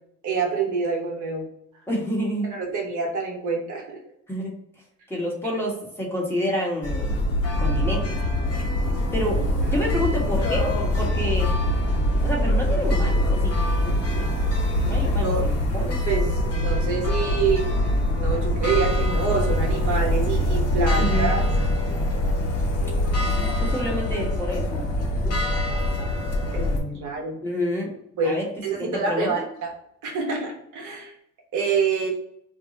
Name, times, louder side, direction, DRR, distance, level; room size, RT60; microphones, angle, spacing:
voice 1, 0.2-1.5 2.4-4.0 9.7-9.9 15.2-15.5 15.8-17.6 18.1-21.4 26.5-27.4 28.2-29.7 30.0-31.1 31.5-32.1, right 4 dB, 75° right, 0 dB, 1.0 m, -27 dB
voice 2, 1.9-2.6 4.3-4.5 5.1-7.2 7.6-8.2 9.1-11.5 12.2-13.6 14.9-16.0 21.0-21.3 23.2-24.9 25.2-25.4 27.0-27.1 27.4-27.9 28.2-28.5 28.7-29.4, equal, 10° left, -3 dB, 1.1 m, -28 dB
sound 1, 6.8-26.8, left 1 dB, 50° left, 1.0 m, -23 dB
2.6 x 2.3 x 4.0 m, 0.75 s
cardioid pair, 90°, 30 cm